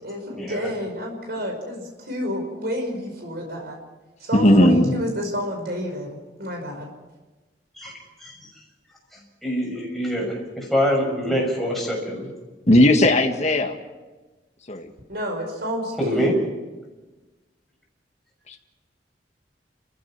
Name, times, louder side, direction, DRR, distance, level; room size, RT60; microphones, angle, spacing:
voice 1, 0.0-3.8 4.2-6.9 15.1-16.4, equal, 65° right, 2 dB, 5.3 m, -30 dB
voice 2, 4.3-5.0 12.7-13.7 14.7-14.9 18.5-18.6, left 1 dB, 40° left, 3 dB, 1.7 m, -16 dB
voice 3, 9.4-12.3 16.0-16.3, equal, ahead, -2 dB, 6.4 m, -24 dB
30.0 x 15.0 x 6.0 m, 1.2 s
head